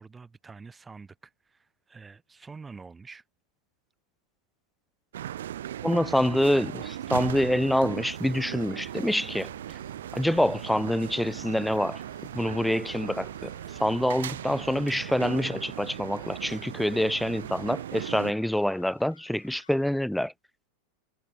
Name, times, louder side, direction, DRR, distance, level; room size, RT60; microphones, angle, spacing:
voice 1, 0.0-3.2, right 4 dB, 15° right, 3.4 m, -47 dB
sound 1, 5.1-18.3, right 11 dB, 60° right, 1.2 m, -38 dB
voice 2, 5.8-9.5 10.1-12.0 12.3-13.5 13.8-20.3, left 1 dB, ahead, 0.3 m, -26 dB
sound 2, 7.0-17.8, left 13 dB, 30° left, 2.0 m, -57 dB
sound 3, 10.8-19.9, left 7 dB, 70° left, 5.5 m, -59 dB
figure-of-eight pair, 90°, 0 cm